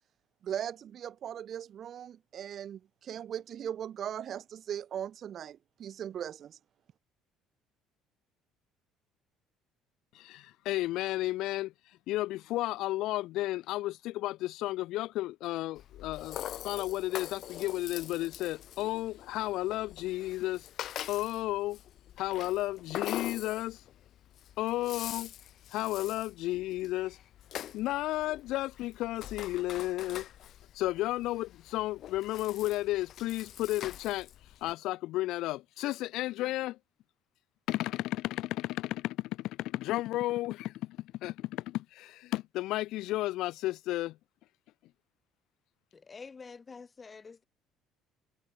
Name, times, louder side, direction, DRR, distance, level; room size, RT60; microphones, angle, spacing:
voice 1, 0.4-6.6, right 9 dB, 40° right, 1.0 m, -39 dB
voice 2, 10.1-11.7 12.1-20.7 21.1-21.8 22.2-23.8 24.6-25.3 25.7-27.2 27.7-30.3 30.7-34.3 34.6-36.8 37.7-44.2, left 17 dB, 65° left, 0.6 m, -33 dB
Rattle (instrument), 15.8-34.7, left 11 dB, 45° left, 2.6 m, -44 dB
voice 3, 45.9-47.4, left 5 dB, 20° left, 1.1 m, -48 dB
cardioid pair, 165°, 0 cm